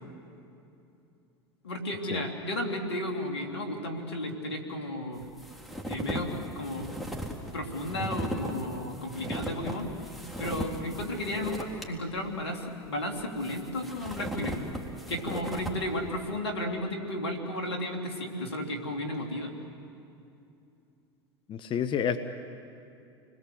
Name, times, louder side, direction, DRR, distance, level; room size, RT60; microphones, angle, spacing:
voice 1, 1.6-5.2 5.9-6.9 7.5-9.9 10.4-14.6 15.1-19.5, left 1 dB, 85° left, 3 dB, 3.3 m, -33 dB
sound 1, 5.2-11.8 12.3-12.4 13.2-15.8, equal, ahead, 3.6 m, -37 dB
voice 2, 21.5-22.2, left 8 dB, 40° left, 10 dB, 1.2 m, -29 dB
29.5 x 21.5 x 7.9 m, 2.7 s
hypercardioid pair, 85°, 13 cm